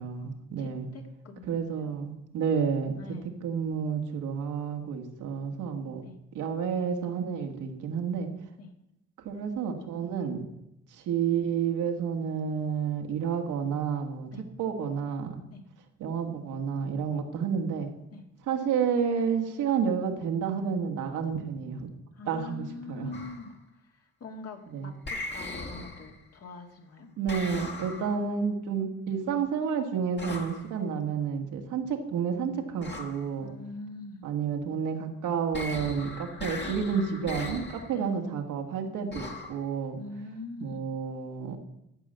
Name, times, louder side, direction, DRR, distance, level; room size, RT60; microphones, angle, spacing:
voice 1, 0.0-0.9 1.5-3.0 3.4-6.0 6.3-8.3 9.2-10.4 10.9-14.3 14.6-15.4 16.0-17.9 18.5-21.9 22.3-23.1 24.7-24.9 27.2-33.5 34.2-40.0 40.6-41.6, right 6 dB, 85° right, 3 dB, 1.7 m, -30 dB
voice 2, 0.6-1.9 3.0-3.3 6.0-6.2 8.6-8.7 14.3-14.4 15.5-15.6 18.1-18.2 22.1-23.5 23.8-27.1 33.4-34.2 37.9-38.1 40.0-40.8, left 3 dB, 55° left, 3 dB, 2.1 m, -43 dB
sound 1, 23.1-23.5 25.1-26.3 27.3-28.3 30.2-30.7 32.8-33.3 35.5-38.0 39.1-39.6, left 2 dB, 35° left, 1.8 m, -39 dB
13.5 x 5.0 x 7.8 m, 0.86 s
cardioid pair, 90°, 30 cm